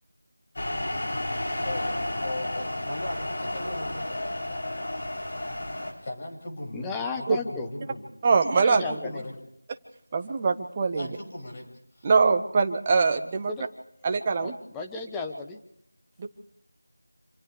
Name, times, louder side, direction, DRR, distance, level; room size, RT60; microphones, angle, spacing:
sound 1, 0.6-5.9, left 1 dB, 50° left, 7.5 m, -32 dB
voice 1, 1.6-5.1 6.0-8.0 8.7-9.3 11.0-11.6 11.9-12.1, left 1 dB, 30° left, 1 dB, 6.5 m, -38 dB
voice 2, 6.7-7.7 8.6-9.2 13.5-13.7 14.4-15.6, left 4 dB, 5° left, 2 dB, 1.1 m, -34 dB
voice 3, 8.2-8.8 10.1-11.1 12.0-13.5 14.0-14.6 16.2-16.3, right 4 dB, 20° right, 5 dB, 1.4 m, -23 dB
27.5 x 27.5 x 3.4 m, 0.73 s
figure-of-eight pair, 170°, 0 cm